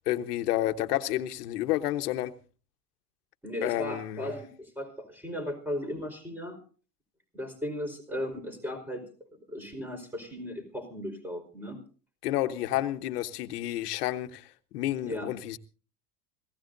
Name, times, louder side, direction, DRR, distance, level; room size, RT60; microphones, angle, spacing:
voice 1, 0.1-2.3 3.6-4.4 12.2-15.6, left 14 dB, 75° left, 1.4 m, -30 dB
voice 2, 3.4-6.6 7.3-9.0 9.5-11.8 15.0-15.3, left 1 dB, 5° right, 4.9 m, -36 dB
26.5 x 17.0 x 2.7 m
supercardioid pair, 115°, 46 cm